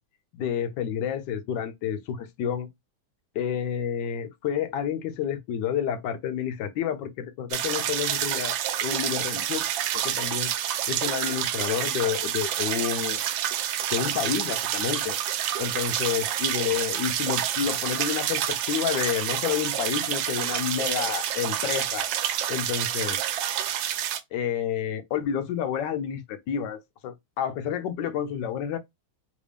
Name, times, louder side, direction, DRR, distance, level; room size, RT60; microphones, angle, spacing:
voice 1, 0.4-2.7 3.3-9.7 9.9-10.5 10.9-13.2 13.9-15.2 15.6-22.1 22.5-23.2 24.3-28.8, left 9 dB, 75° left, 1.1 m, -29 dB
sound 1, 7.5-24.2, right 11 dB, 75° right, 1.2 m, -28 dB
3.3 x 2.6 x 3.3 m
omnidirectional pair, 2.3 m